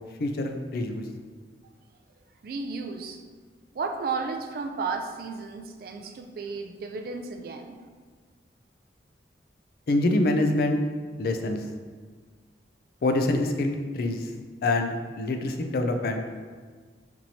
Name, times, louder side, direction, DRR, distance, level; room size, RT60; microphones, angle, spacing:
voice 1, 0.2-1.0 9.9-10.8 11.2-11.6 13.0-14.2 14.6-16.2, left 2 dB, 55° left, 5 dB, 0.4 m, -25 dB
voice 2, 2.4-3.2 3.7-7.8, right 4 dB, 55° right, 5 dB, 0.3 m, -33 dB
4.4 x 2.9 x 2.7 m, 1.5 s
head